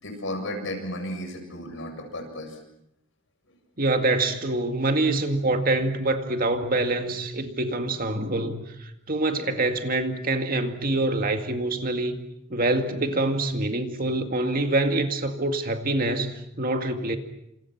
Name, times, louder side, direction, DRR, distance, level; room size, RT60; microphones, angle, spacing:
voice 1, 0.0-2.6, left 1 dB, 60° left, 7.5 m, -34 dB
voice 2, 3.8-12.2 12.5-17.2, right 2 dB, 40° right, 2.1 m, -25 dB
28.5 x 28.0 x 6.0 m
head